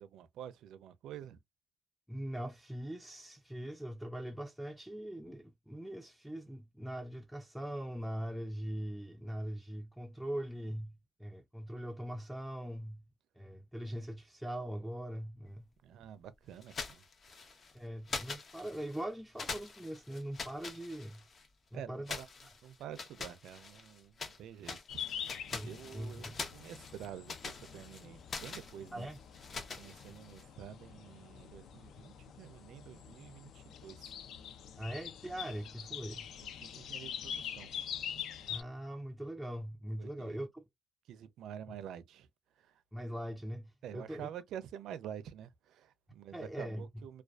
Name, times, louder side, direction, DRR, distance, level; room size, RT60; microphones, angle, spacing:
voice 1, 0.0-1.4 15.8-17.0 21.7-22.3 22.6-24.8 25.1-29.1 29.7-34.1 36.4-37.7 40.0-40.4 41.1-42.3 42.6-42.8 43.8-47.2, right 10 dB, 80° right, 0.4 m, -48 dB
voice 2, 2.1-13.0 13.4-15.7 17.7-21.2 21.7-22.2 25.5-26.4 28.9-29.2 34.8-36.3 38.5-40.6 42.9-44.3 46.3-46.9, right 1 dB, ahead, 0.3 m, -41 dB
sound 1, 16.6-17.7 18.1-19.0 19.4-21.5 22.1-24.4 24.6-30.4, left 4 dB, 45° left, 0.7 m, -44 dB
sound 2, 24.9-38.6, left 8 dB, 75° left, 0.4 m, -45 dB
2.4 x 2.3 x 2.2 m
cardioid pair, 90°, 0 cm